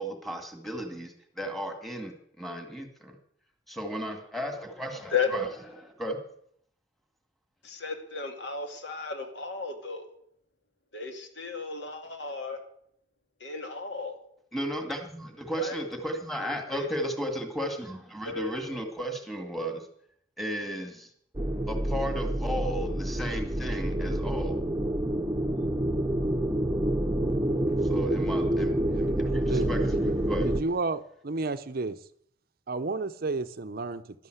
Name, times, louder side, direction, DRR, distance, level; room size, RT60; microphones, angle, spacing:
voice 1, 0.0-3.2 3.7-5.5 5.8-6.2 14.5-19.9 20.4-21.1 21.7-24.6 27.8-28.8 29.2-29.8 30.3-30.5, equal, ahead, 2.1 m, -34 dB
voice 2, 7.6-10.1 10.9-12.6 13.4-14.2 15.5-15.8 16.7-16.9 18.2-18.6, left 5 dB, 65° left, 2.4 m, -34 dB
sound 1, 21.3-30.6, right 1 dB, 15° right, 0.8 m, -28 dB
voice 3, 30.4-32.0 32.7-34.0, right 3 dB, 50° right, 0.6 m, -31 dB
12.0 x 11.5 x 7.9 m
head